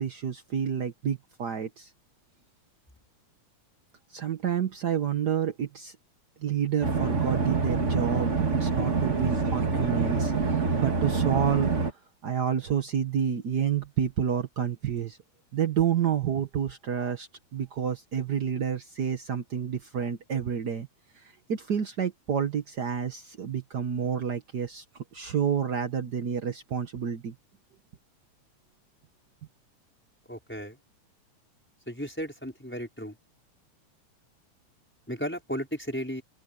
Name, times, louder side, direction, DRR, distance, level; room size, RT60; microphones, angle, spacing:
voice 1, 0.0-1.9 4.1-5.9 6.4-8.3 8.6-15.2 15.5-20.9 21.1-24.8 25.1-27.3, right 8 dB, 65° right, 1.0 m, -29 dB
sound 1, 6.8-11.9, right 4 dB, 30° right, 1.7 m, -26 dB
voice 2, 30.3-30.8 31.9-33.2 35.1-36.2, equal, 5° left, 4.9 m, -34 dB
open air
omnidirectional pair, 3.5 m